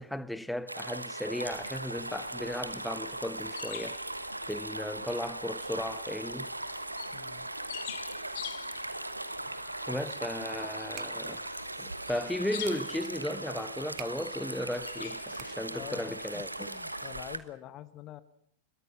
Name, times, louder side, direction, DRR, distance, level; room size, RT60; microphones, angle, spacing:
voice 1, 0.0-4.0 4.5-6.5 9.9-11.4 11.8-16.7, left 1 dB, ahead, 1.2 m, -36 dB
sound 1, 0.7-17.4, right 1 dB, 85° right, 1.2 m, -39 dB
sound 2, 1.4-17.5, left 17 dB, 50° left, 0.8 m, -49 dB
voice 2, 7.1-7.5 10.5-10.8 15.7-18.2, left 12 dB, 35° left, 1.1 m, -46 dB
sound 3, 10.8-15.9, right 20 dB, 45° right, 1.0 m, -52 dB
25.5 x 22.0 x 6.1 m
figure-of-eight pair, 90°, 0 cm